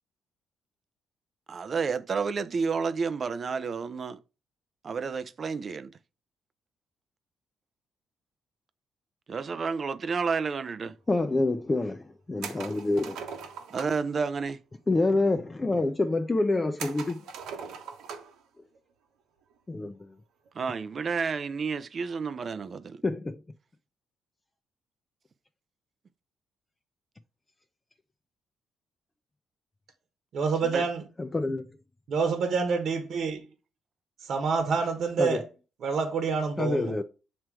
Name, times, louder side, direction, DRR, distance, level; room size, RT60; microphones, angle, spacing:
voice 1, 1.5-4.2 4.8-5.9 9.3-10.9 13.7-14.6 20.5-23.0 30.6-30.9, right 5 dB, 45° right, 0.5 m, -30 dB
voice 2, 11.1-13.2 14.9-17.2 19.7-20.0 23.0-23.4 31.2-31.7 35.2-35.4 36.6-37.0, left 2 dB, 20° left, 0.5 m, -27 dB
sound 1, 12.4-14.1 16.8-18.4 18.7-18.8 20.5-20.7, right 6 dB, 85° right, 1.1 m, -40 dB
voice 3, 30.3-31.0 32.1-33.4 34.3-35.4 35.8-36.9, right 5 dB, 65° right, 1.2 m, -27 dB
7.4 x 3.1 x 4.7 m
cardioid pair, 90°, 0 cm